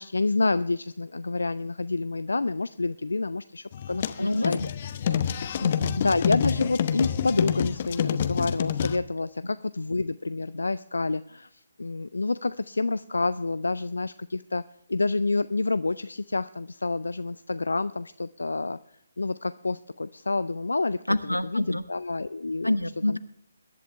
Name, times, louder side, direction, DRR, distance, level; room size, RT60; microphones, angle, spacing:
voice 1, 0.0-4.6 6.0-14.6 14.9-18.8 19.2-22.8 23.1-23.2, left 3 dB, 65° left, 15 dB, 0.4 m, -28 dB
sound 1, 3.7-9.0, left 9 dB, 35° left, 0.9 m, -27 dB
voice 2, 4.2-4.7 5.1-5.2 5.6-6.0 21.1-21.8 22.6-23.2, left 1 dB, 85° left, 14 dB, 1.0 m, -27 dB
22.0 x 11.0 x 3.3 m, 0.71 s
figure-of-eight pair, 140°, 0 cm